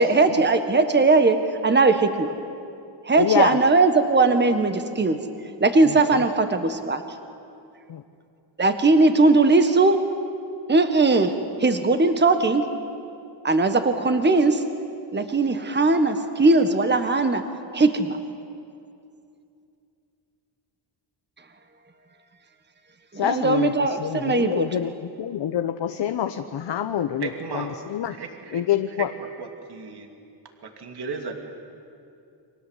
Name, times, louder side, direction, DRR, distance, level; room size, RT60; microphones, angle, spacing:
voice 1, 0.0-2.4 3.0-5.2 5.6-7.0 8.6-10.0 10.7-12.7 13.4-14.6 15.1-17.4 17.7-18.2 23.1-24.7, right 3 dB, 25° right, 8 dB, 1.6 m, -19 dB
voice 2, 3.2-3.6 5.9-6.3 7.9-8.0 23.1-28.2 28.5-29.1, left 9 dB, 70° left, 8 dB, 1.1 m, -26 dB
voice 3, 27.2-27.7 28.1-28.6 29.2-30.1 30.6-31.3, right 5 dB, 60° right, 4 dB, 2.8 m, -35 dB
30.0 x 24.0 x 8.3 m, 2.6 s
wide cardioid pair, 120°, 44 cm